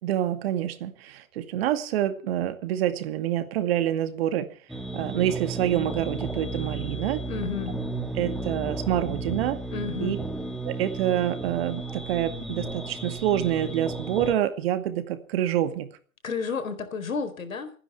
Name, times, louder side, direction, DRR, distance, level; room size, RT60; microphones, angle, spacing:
voice 1, 0.0-4.5 4.9-7.2 8.2-9.6 10.0-10.2 10.6-15.9, right 11 dB, 50° right, 9 dB, 2.4 m, -27 dB
sound 1, 4.7-14.3, right 2 dB, ahead, 1.4 m, -33 dB
voice 2, 7.3-7.7 9.7-10.2 16.2-17.7, left 5 dB, 80° left, 8 dB, 4.5 m, -31 dB
28.5 x 10.0 x 4.7 m, 0.42 s
hypercardioid pair, 130°, 40 cm